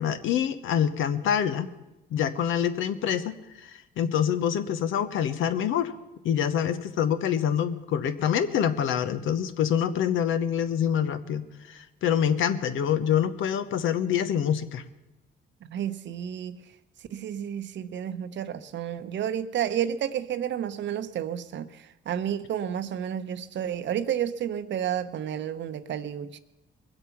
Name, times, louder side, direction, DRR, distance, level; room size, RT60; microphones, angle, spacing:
voice 1, 0.0-1.7 2.1-5.9 6.2-14.8, left 9 dB, 80° left, 11 dB, 0.9 m, -26 dB
voice 2, 15.6-16.6 17.1-26.4, right 9 dB, 65° right, 12 dB, 0.8 m, -31 dB
21.5 x 8.0 x 5.9 m, 0.95 s
cardioid pair, 90°, 20 cm